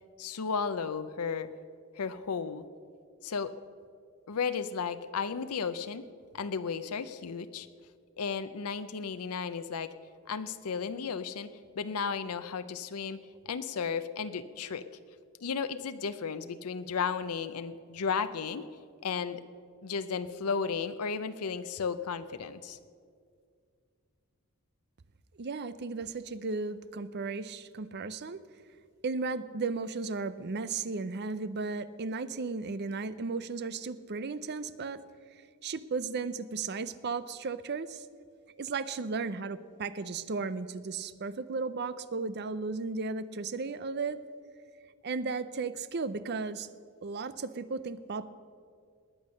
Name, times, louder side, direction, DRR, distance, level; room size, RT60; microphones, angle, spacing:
voice 1, 0.2-1.5 2.0-2.7 3.2-3.5 4.3-6.0 6.3-7.7 8.2-9.9 10.3-11.5 11.8-13.2 13.5-14.8 15.4-18.6 19.0-19.4 19.8-22.8, left 5 dB, 85° left, 11 dB, 0.6 m, -34 dB
voice 2, 25.4-28.4 29.0-35.0 35.6-38.0 38.6-44.2 45.0-46.7 47.0-48.3, right 4 dB, 50° right, 15 dB, 0.6 m, -35 dB
20.0 x 8.6 x 6.4 m, 2.2 s
head